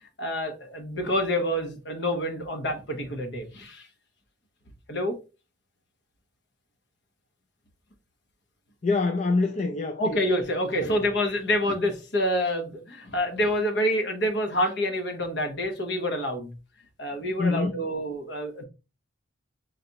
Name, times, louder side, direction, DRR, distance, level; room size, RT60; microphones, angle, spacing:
voice 1, 0.0-3.9 4.9-5.2 10.0-16.5 17.0-18.6, equal, 55° left, 0.9 m, -27 dB
voice 2, 8.8-10.2 10.8-11.0 17.4-17.8, left 3 dB, 35° left, 0.4 m, -26 dB
3.9 x 3.3 x 2.8 m
head